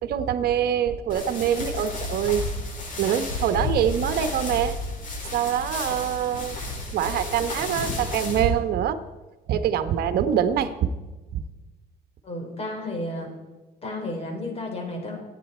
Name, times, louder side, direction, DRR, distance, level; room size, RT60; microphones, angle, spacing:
voice 1, 0.0-2.5 3.0-4.8 5.3-6.6 6.9-9.0 9.5-10.9 11.3-11.4, right 9 dB, 65° right, 9 dB, 1.2 m, -24 dB
sound 1, 1.1-8.4, left 2 dB, 50° left, 5.3 m, -32 dB
voice 2, 12.2-13.3 13.8-15.2, left 1 dB, 35° left, 3 dB, 4.2 m, -32 dB
26.0 x 9.2 x 4.4 m, 1.2 s
cardioid pair, 110°, 17 cm